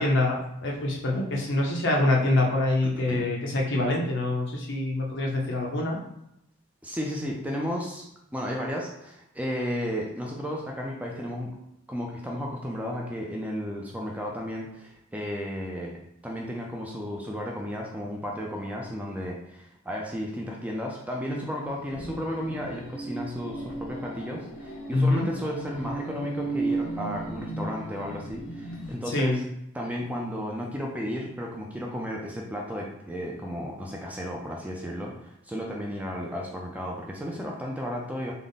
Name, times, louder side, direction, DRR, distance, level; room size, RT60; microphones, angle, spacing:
voice 1, 0.0-6.0 24.9-25.3 29.1-29.4, left 2 dB, 60° left, -1 dB, 0.7 m, -25 dB
voice 2, 6.8-8.0 8.3-11.5 11.9-29.4 29.7-38.3, equal, 5° right, -1 dB, 0.4 m, -33 dB
sound 1, 21.6-28.9, right 2 dB, 90° left, 1.1 m, -35 dB
3.4 x 2.1 x 3.9 m, 0.80 s
head